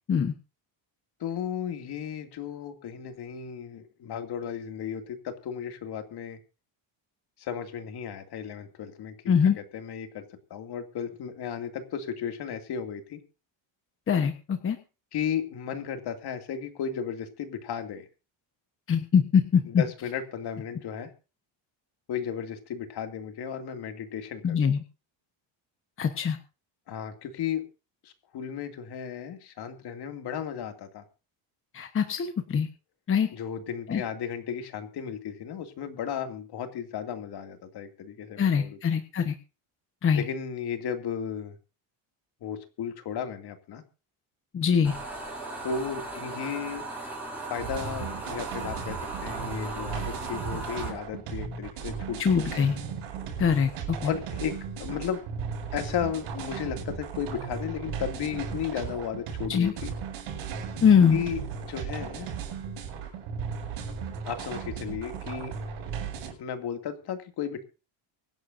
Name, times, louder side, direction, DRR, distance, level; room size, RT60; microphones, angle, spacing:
voice 1, 1.2-6.4 7.4-13.2 15.1-18.1 19.7-21.1 22.1-24.7 26.9-27.6 28.0-31.0 33.3-38.8 40.1-41.6 42.4-43.8 45.6-46.8 47.4-52.6 54.0-55.2 55.7-59.9 61.1-62.3 64.2-65.5 66.4-67.6, left 8 dB, 50° left, 6 dB, 2.5 m, -34 dB
voice 2, 14.1-14.8 18.9-19.8 24.4-24.8 26.0-26.4 31.7-32.7 33.1-33.3 33.9-34.0 38.4-39.3 40.0-40.2 44.5-44.9 52.2-52.7 53.4-54.1 59.5-59.7 60.8-61.2, left 7 dB, 25° left, 6 dB, 1.1 m, -23 dB
sound 1, 44.8-50.9, right 2 dB, 5° right, 6.2 m, -37 dB
sound 2, 47.6-66.3, right 6 dB, 75° right, 7.7 m, -36 dB
25.0 x 11.0 x 2.7 m, 0.32 s
cardioid pair, 165°, 48 cm